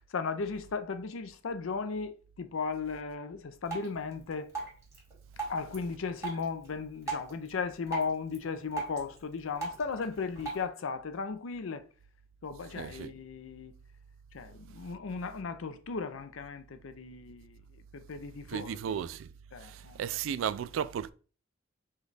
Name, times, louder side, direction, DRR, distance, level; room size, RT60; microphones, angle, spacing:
voice 1, 0.1-4.5 5.5-11.8 12.4-13.7 14.3-17.6 17.9-19.0 19.5-20.0, left 5 dB, 75° left, 0.5 m, -36 dB
Drip, 3.6-10.6, right 3 dB, 15° right, 1.7 m, -42 dB
voice 2, 12.8-13.1 18.5-19.3 19.7-21.1, right 8 dB, 70° right, 0.3 m, -34 dB
5.1 x 2.3 x 3.9 m
head